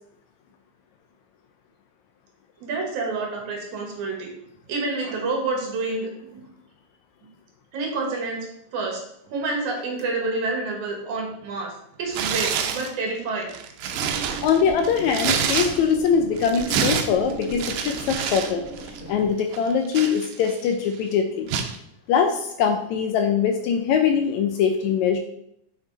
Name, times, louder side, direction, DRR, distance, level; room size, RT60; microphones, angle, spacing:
voice 1, 2.6-4.3 4.7-6.4 7.7-8.5 8.7-11.7 12.0-13.5, right 3 dB, 65° right, 1 dB, 2.8 m, -28 dB
Tearing, 12.1-12.9 13.4-16.1 16.4-18.5 18.8-19.0 19.5-20.7 21.5-21.8, right 7 dB, 90° right, 2.4 m, -27 dB
sound 1, 13.9-19.3, right 2 dB, 55° left, 2.9 m, -38 dB
voice 2, 14.4-18.6 19.1-21.5 22.1-25.2, left 7 dB, 80° left, 6 dB, 1.7 m, -22 dB
6.7 x 5.7 x 3.9 m, 0.75 s
omnidirectional pair, 3.7 m